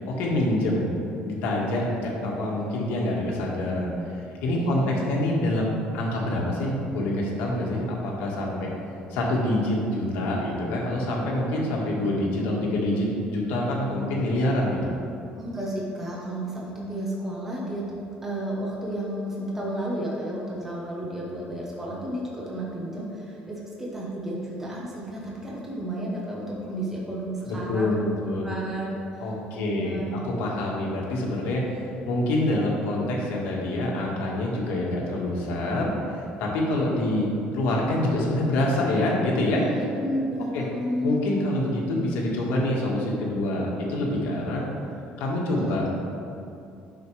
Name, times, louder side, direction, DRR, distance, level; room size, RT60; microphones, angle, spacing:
voice 1, 0.1-8.7 9.1-14.8 27.5-28.5 29.2-31.6 32.0-39.6 40.5-40.6 41.0-44.6 45.2-45.9, left 1 dB, 70° left, -3 dB, 1.6 m, -26 dB
voice 2, 4.6-5.1 15.3-17.9 18.2-28.1 28.4-30.2 39.5-41.2 45.5-45.8, right 1 dB, 10° right, -5 dB, 1.0 m, -32 dB
9.1 x 6.3 x 3.3 m, 2.6 s
cardioid pair, 175°, 3 cm